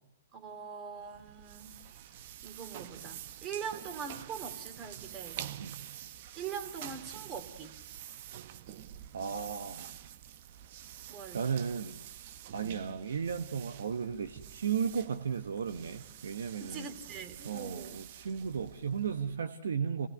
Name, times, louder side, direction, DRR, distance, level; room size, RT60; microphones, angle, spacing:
voice 1, 0.3-1.7 2.4-5.4 6.4-7.8 11.1-11.5 16.6-18.0, right 6 dB, 25° right, 6 dB, 3.0 m, -42 dB
sound 1, 1.0-19.4, right 11 dB, 50° right, 0.9 m, -47 dB
voice 2, 9.1-9.9 11.3-12.0 12.5-16.9 17.4-20.1, right 6 dB, 75° right, 9 dB, 1.2 m, -35 dB
28.5 x 19.0 x 6.7 m, 0.86 s
hypercardioid pair, 125°, 0 cm